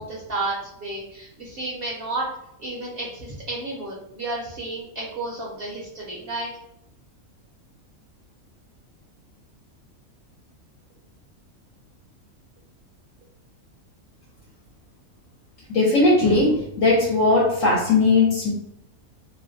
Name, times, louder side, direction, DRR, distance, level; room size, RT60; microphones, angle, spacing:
voice 1, 0.0-2.3 2.6-6.5, right 2 dB, 55° right, -4 dB, 0.7 m, -32 dB
voice 2, 15.7-18.5, left 2 dB, 70° left, -4 dB, 0.9 m, -18 dB
2.6 x 2.1 x 2.5 m, 0.77 s
omnidirectional pair, 1.5 m